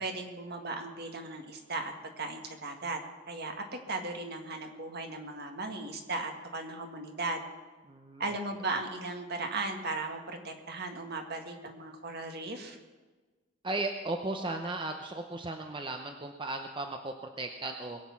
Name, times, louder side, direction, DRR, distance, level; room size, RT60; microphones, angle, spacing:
voice 1, 0.0-3.0 3.3-7.5 8.2-12.8, right 3 dB, 55° right, 4 dB, 1.7 m, -37 dB
voice 2, 7.9-8.2 13.6-18.0, right 2 dB, 25° right, 4 dB, 0.8 m, -36 dB
21.5 x 8.5 x 5.8 m, 1.3 s
head